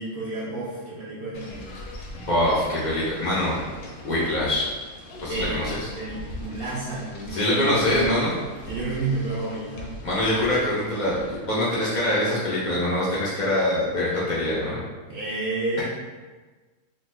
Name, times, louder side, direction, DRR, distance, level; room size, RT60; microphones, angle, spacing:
voice 1, 0.0-1.7 5.3-8.3 8.7-10.0 15.1-15.8, right 2 dB, 70° right, -7 dB, 0.5 m, -31 dB
sound 1, 1.3-11.4, left 1 dB, 65° left, 0.9 m, -40 dB
voice 2, 2.1-3.6 4.0-4.7 5.2-5.9 7.3-8.3 10.0-14.8, left 1 dB, 80° left, -8 dB, 0.4 m, -24 dB
3.1 x 2.1 x 3.2 m, 1.3 s
omnidirectional pair, 1.7 m